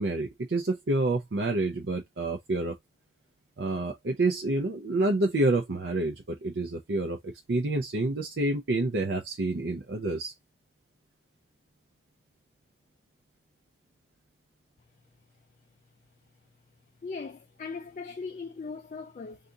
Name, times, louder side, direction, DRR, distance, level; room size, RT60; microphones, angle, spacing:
voice 1, 0.0-2.8 3.6-10.3, right 2 dB, 65° right, 0.5 m, -28 dB
voice 2, 17.0-19.4, left 4 dB, 40° left, 0.3 m, -39 dB
2.7 x 2.5 x 3.6 m
head